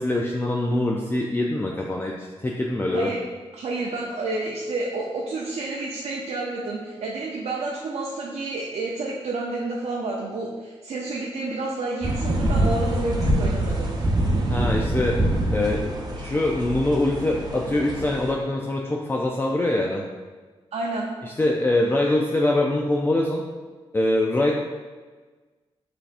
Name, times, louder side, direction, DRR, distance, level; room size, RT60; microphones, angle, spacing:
voice 1, 0.0-3.1 14.5-15.2 15.5-20.0 21.2-23.4 23.9-24.5, left 1 dB, 20° left, -1 dB, 0.4 m, -24 dB
voice 2, 3.6-13.9 20.7-21.1, right 2 dB, 75° right, -3 dB, 0.6 m, -29 dB
sound 1, 12.0-18.3, right 1 dB, 40° right, 0.8 m, -25 dB
5.8 x 3.4 x 2.5 m, 1.4 s
cardioid pair, 80°, 11 cm